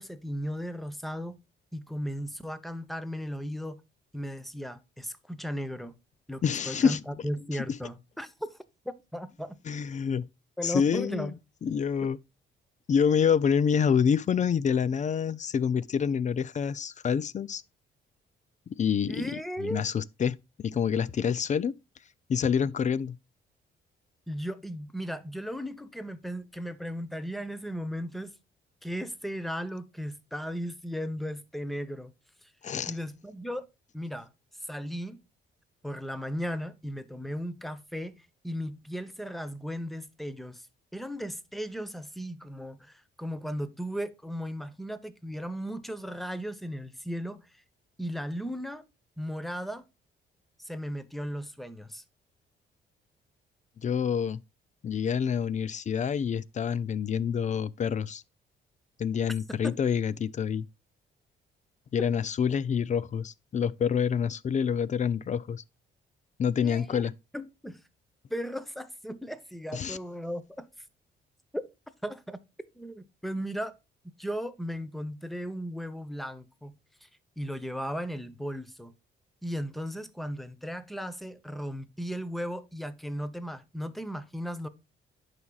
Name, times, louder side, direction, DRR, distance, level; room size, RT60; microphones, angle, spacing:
voice 1, 0.0-1.4 1.7-3.8 4.1-5.9 6.3-8.6 8.8-9.6 10.6-11.3 19.1-19.8 24.3-28.3 28.8-32.1 32.4-32.5 32.9-33.6 33.9-34.3 34.7-35.2 35.8-40.7 40.9-47.4 48.0-48.8 49.2-49.8 50.6-52.0 59.6-59.7 66.6-67.1 67.3-67.8 68.3-70.7 72.0-72.4 72.7-73.7 74.2-77.1 77.4-78.9 79.4-84.7, equal, ahead, 0.9 m, -36 dB
voice 2, 6.4-7.0 9.7-10.3 10.6-11.3 11.6-12.2 12.9-17.6 18.7-21.8 22.3-23.2 32.6-32.9 53.8-54.4 54.8-58.2 59.0-60.7 61.9-65.6 66.4-67.1 69.7-70.0, left 7 dB, 40° left, 0.4 m, -27 dB
11.0 x 4.9 x 2.3 m
cardioid pair, 90°, 20 cm